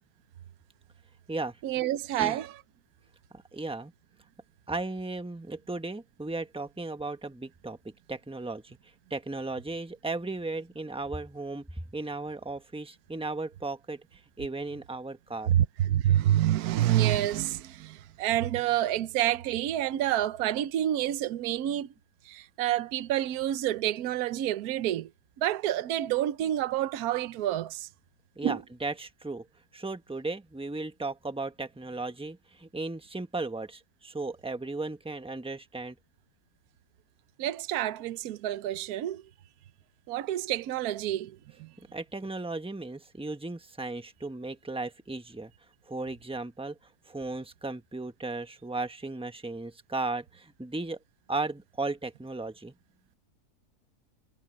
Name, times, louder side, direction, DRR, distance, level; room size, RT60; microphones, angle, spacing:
voice 1, 1.6-2.5 15.5-21.9 22.3-25.1 25.4-27.9 28.4-28.6 37.4-39.2 40.1-41.7, right 12 dB, 70° right, 1.2 m, -28 dB
voice 2, 3.3-3.9 4.7-7.8 8.1-8.8 9.1-11.6 11.9-14.0 14.4-15.5 28.4-29.4 29.7-36.0 41.9-45.5 45.9-46.8 47.1-51.0 51.3-52.7, right 3 dB, 5° right, 1.1 m, -35 dB
omnidirectional pair, 1.7 m